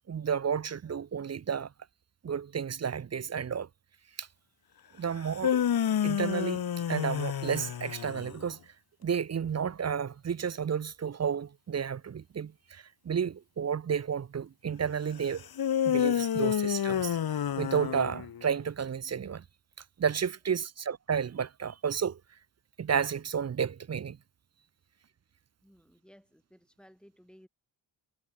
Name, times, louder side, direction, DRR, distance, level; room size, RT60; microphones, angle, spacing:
voice 1, 0.1-1.7 2.2-3.7 4.2-4.3 5.0-5.6 6.0-8.7 9.0-15.5 15.8-17.2 17.6-19.4 20.0-22.2 22.8-24.2, right 7 dB, 35° right, 0.4 m, -32 dB
sound 1, 5.2-8.4 15.6-18.5, left 9 dB, 50° left, 0.6 m, -29 dB
voice 2, 25.6-27.5, equal, ahead, 6.0 m, -58 dB
wide cardioid pair, 60°, 50 cm